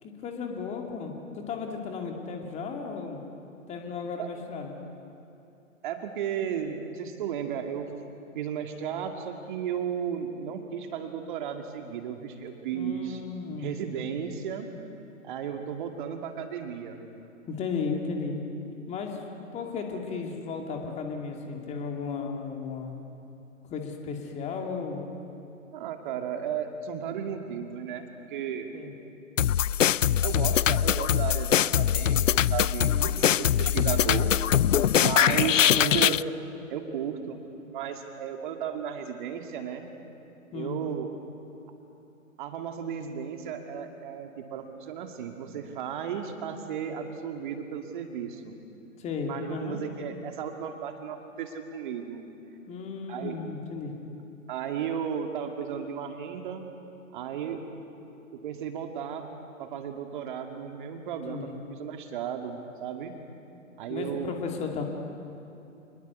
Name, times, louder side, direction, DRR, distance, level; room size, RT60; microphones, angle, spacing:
voice 1, 0.0-3.2 3.7-4.8 12.7-14.0 17.5-18.4 18.9-22.9 23.6-25.0 28.7-28.9 32.9-33.5 35.4-35.5 35.7-36.2 40.5-40.8 49.0-49.8 52.7-53.9 61.3-61.5 63.9-64.8, left 5 dB, 15° left, 2 dB, 2.5 m, -35 dB
voice 2, 5.8-7.9 8.3-13.2 13.6-14.7 15.2-17.0 25.7-28.7 30.2-34.3 35.0-36.2 36.7-37.5 37.7-39.9 40.5-41.1 42.4-48.6 49.2-52.2 53.1-53.4 54.5-56.7 57.1-57.6 58.4-59.3 59.6-63.1 63.8-64.3, right 8 dB, 35° right, 5 dB, 2.2 m, -34 dB
sound 1, 29.4-36.2, left 10 dB, 65° left, 0.5 m, -23 dB
27.0 x 21.0 x 8.2 m, 3.0 s
figure-of-eight pair, 125°, 40 cm